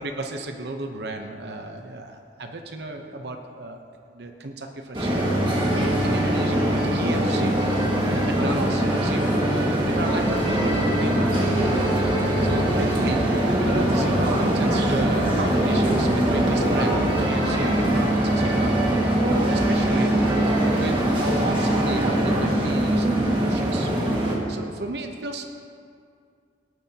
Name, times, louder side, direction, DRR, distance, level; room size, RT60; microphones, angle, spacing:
voice 1, 0.0-3.8 4.1-7.6 8.0-9.3 9.9-11.3 12.0-12.1 12.4-18.8 19.5-20.1 20.8-24.0 24.5-25.4, right 2 dB, 65° right, 4 dB, 0.8 m, -33 dB
sound 1, 4.9-24.4, right 1 dB, 30° right, 1.7 m, -22 dB
18.0 x 10.5 x 2.9 m, 2.3 s
head